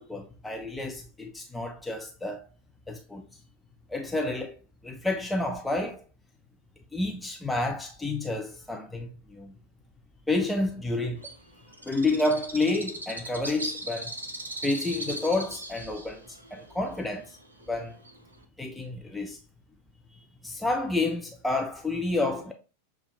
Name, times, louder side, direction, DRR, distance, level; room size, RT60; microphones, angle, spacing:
voice 1, 0.0-2.4 2.9-3.2 3.9-4.6 4.8-6.0 6.9-9.5 10.3-11.2 11.8-14.1 14.6-17.4 17.7-18.0 18.6-19.4 20.1-22.5, left 2 dB, 5° left, 0.5 m, -30 dB
Bird, 11.2-18.4, right 1 dB, 80° right, 0.6 m, -39 dB
6.7 x 2.3 x 2.2 m
figure-of-eight pair, 90°, 0 cm